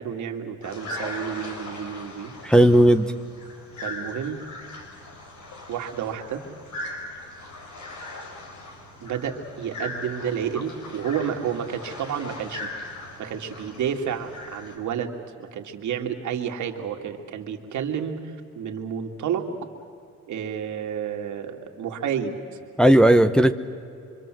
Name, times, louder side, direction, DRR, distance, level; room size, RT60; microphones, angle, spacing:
voice 1, 0.0-2.3 3.8-4.4 5.7-6.4 9.0-12.9 13.2-19.5 20.3-22.4, right 8 dB, 75° right, 3 dB, 2.5 m, -30 dB
sound 1, 0.6-14.8, left 2 dB, 70° left, 4.7 m, -39 dB
voice 2, 2.4-3.1 22.8-23.5, right 1 dB, 5° left, 7 dB, 0.9 m, -15 dB
26.0 x 25.0 x 7.7 m, 2.5 s
cardioid pair, 90°, 30 cm